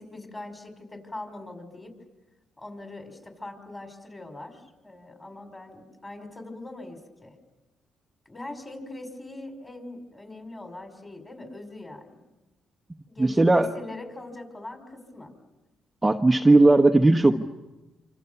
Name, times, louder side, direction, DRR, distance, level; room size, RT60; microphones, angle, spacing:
voice 1, 0.0-2.0 2.6-7.4 8.3-12.2 13.1-15.3, left 2 dB, 20° left, 6 dB, 5.5 m, -41 dB
voice 2, 13.2-13.7 16.0-17.4, right 2 dB, 15° right, 3 dB, 1.2 m, -17 dB
27.0 x 26.5 x 7.1 m, 1.1 s
cardioid pair, 90°, 0 cm